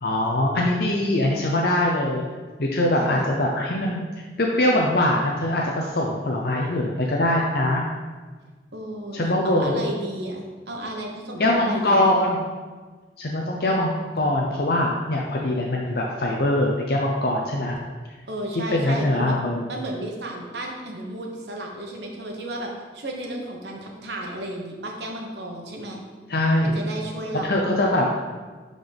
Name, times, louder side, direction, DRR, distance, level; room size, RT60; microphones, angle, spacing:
voice 1, 0.0-2.2 2.6-4.0 4.4-7.8 9.1-9.8 11.4-12.4 13.2-17.8 18.7-19.6 26.3-26.8 27.4-28.1, left 1 dB, 55° left, -1 dB, 0.7 m, -22 dB
voice 2, 2.9-3.3 8.7-12.1 18.3-19.3 19.7-26.0 26.6-27.6, right 1 dB, 70° right, 0 dB, 1.2 m, -33 dB
11.5 x 4.0 x 3.5 m, 1.4 s
head